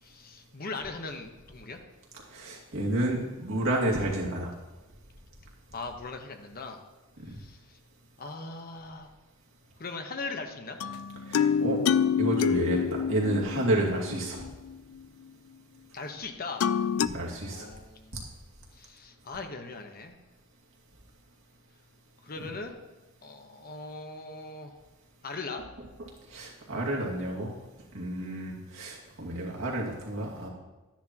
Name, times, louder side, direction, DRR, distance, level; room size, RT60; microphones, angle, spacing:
voice 1, 0.0-1.8 5.7-6.8 7.3-7.8 8.2-9.1 9.8-10.8 15.9-16.7 17.5-18.3 18.7-20.2 22.2-22.8 23.2-24.7 25.2-25.6, left 3 dB, 45° left, 5 dB, 1.0 m, -39 dB
voice 2, 2.3-4.5 7.3-7.4 11.3-11.8 12.2-14.4 17.0-17.7 26.3-27.5 27.9-30.5, right 1 dB, 65° right, -3 dB, 2.3 m, -30 dB
sound 1, 10.8-14.8 16.6-17.1, left 7 dB, 85° left, 0.4 m, -27 dB
13.0 x 10.0 x 2.9 m, 1.1 s
head